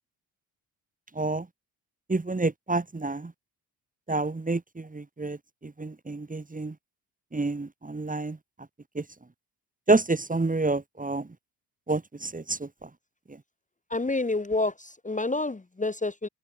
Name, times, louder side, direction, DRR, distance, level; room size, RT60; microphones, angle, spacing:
voice 1, 1.2-1.5 2.1-3.3 4.1-5.4 5.6-6.8 7.3-8.4 9.0-9.1 9.9-11.3 11.9-12.9, right 3 dB, 15° right, 1.7 m, -28 dB
voice 2, 13.9-16.3, left 2 dB, 15° left, 1.5 m, -28 dB
hypercardioid pair, 45°, 46 cm